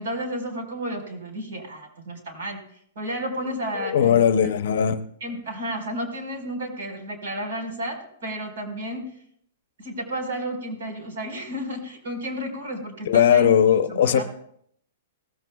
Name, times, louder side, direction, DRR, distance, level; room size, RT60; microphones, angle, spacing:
voice 1, 0.0-2.6 2.9-4.2 5.2-9.1 9.8-13.5 13.8-14.2, equal, 65° right, 4 dB, 4.5 m, -32 dB
voice 2, 3.8-5.1 13.1-14.2, left 9 dB, 50° left, 11 dB, 0.7 m, -19 dB
19.0 x 14.0 x 2.3 m, 0.68 s
hypercardioid pair, 180°, 0 cm